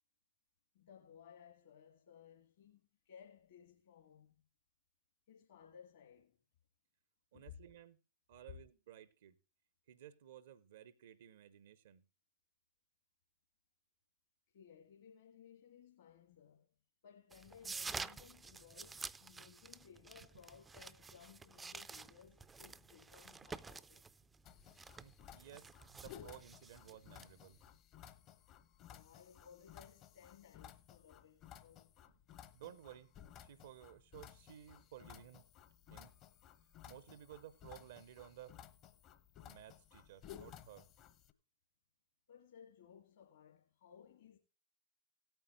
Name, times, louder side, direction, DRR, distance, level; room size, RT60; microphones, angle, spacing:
voice 1, 0.7-4.3 5.3-6.4 7.3-7.5 14.5-16.7 17.0-24.1 28.9-31.9 42.3-44.4, left 8 dB, 60° left, 1.8 m, -60 dB
voice 2, 7.3-8.0 8.3-9.4 9.9-12.0 25.0-27.6 28.0-28.1 32.0-32.1 32.5-33.1 33.4-35.5 35.9-36.1 36.9-38.6 39.4-40.9, right 11 dB, 60° right, 0.7 m, -56 dB
sound 1, 17.3-27.6, right 4 dB, 15° right, 0.4 m, -50 dB
sound 2, 24.4-41.3, left 10 dB, 35° left, 0.9 m, -57 dB
17.5 x 9.0 x 2.6 m
figure-of-eight pair, 90°, 0 cm